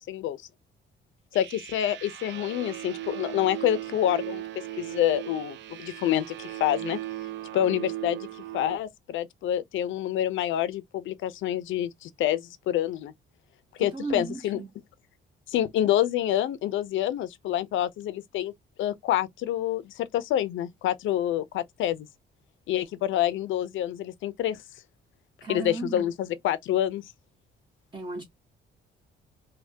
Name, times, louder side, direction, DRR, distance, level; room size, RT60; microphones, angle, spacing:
voice 1, 0.1-0.4 1.3-4.4 4.8-7.0 7.5-8.3 8.5-13.1 13.8-14.6 15.5-18.5 18.8-22.1 22.7-24.6 25.5-27.1, left 12 dB, 75° left, 0.5 m, -27 dB
sound 1, 1.3-8.8, right 14 dB, 65° right, 0.5 m, -37 dB
voice 2, 13.8-14.7 25.4-26.0 27.9-28.2, right 3 dB, 25° right, 0.8 m, -35 dB
3.3 x 2.2 x 2.7 m
cardioid pair, 90°, 20 cm